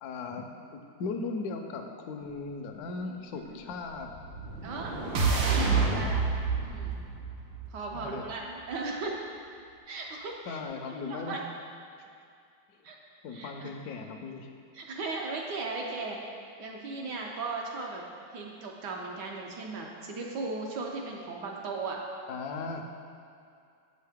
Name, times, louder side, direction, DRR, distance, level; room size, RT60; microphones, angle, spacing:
voice 1, 0.0-4.1 7.9-8.3 10.5-11.4 13.2-14.5 22.3-22.8, left 4 dB, 70° left, 4 dB, 0.9 m, -37 dB
voice 2, 3.0-3.6 4.6-6.2 6.6-6.9 7.7-9.2 9.9-11.4 12.8-13.0 13.3-13.7 14.7-16.2 16.6-18.0 18.3-22.0, right 3 dB, 70° right, -1 dB, 1.2 m, -37 dB
sound 1, 4.0-8.2, right 4 dB, 85° right, 1.7 m, -29 dB
7.9 x 5.6 x 3.5 m, 2.4 s
omnidirectional pair, 2.1 m